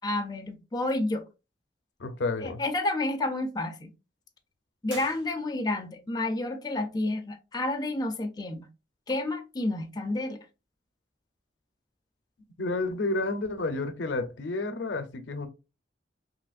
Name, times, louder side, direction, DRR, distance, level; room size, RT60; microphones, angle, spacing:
voice 1, 0.0-1.2 2.4-3.9 4.8-8.7 9.1-10.5, left 2 dB, 20° left, 0.4 m, -30 dB
voice 2, 2.0-2.6 12.6-15.5, left 2 dB, 80° left, 0.5 m, -30 dB
sound 1, 4.8-5.9, right 2 dB, 85° right, 1.4 m, -46 dB
3.1 x 2.9 x 2.4 m
head